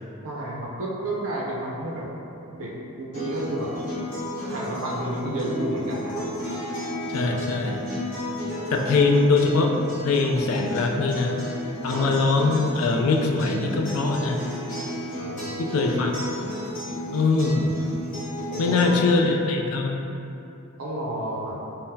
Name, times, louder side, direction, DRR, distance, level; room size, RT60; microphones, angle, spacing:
voice 1, 0.2-2.1 2.5-2.7 3.0-3.7 4.4-6.3 11.8-12.1 15.2-15.9 18.5-19.1 20.8-21.6, right 1 dB, 65° right, -4 dB, 0.5 m, -31 dB
Acoustic guitar, 3.1-19.1, left 1 dB, 35° left, 1.4 m, -33 dB
voice 2, 7.1-7.8 8.7-9.7 10.0-11.4 11.8-14.4 15.6-16.1 17.1-17.8 18.6-20.1, left 3 dB, 65° left, 2 dB, 0.3 m, -22 dB
3.8 x 2.0 x 2.6 m, 2.8 s
head